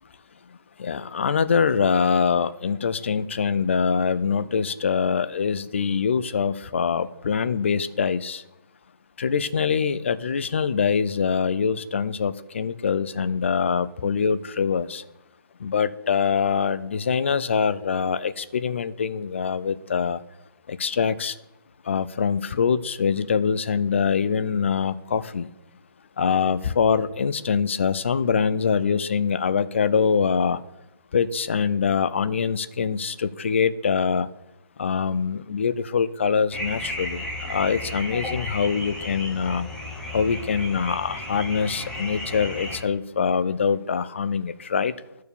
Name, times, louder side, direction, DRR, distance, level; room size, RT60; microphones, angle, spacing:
voice 1, 0.8-8.4 9.2-15.0 15.6-20.2 20.7-21.4 21.8-25.5 26.2-30.6 31.1-34.3 34.8-39.7 40.1-44.9, left 6 dB, 30° left, 15 dB, 0.4 m, -24 dB
sound 1, 36.5-42.8, left 1 dB, 5° left, 0.8 m, -34 dB
12.5 x 4.6 x 6.8 m, 0.91 s
hypercardioid pair, 165°, 13 cm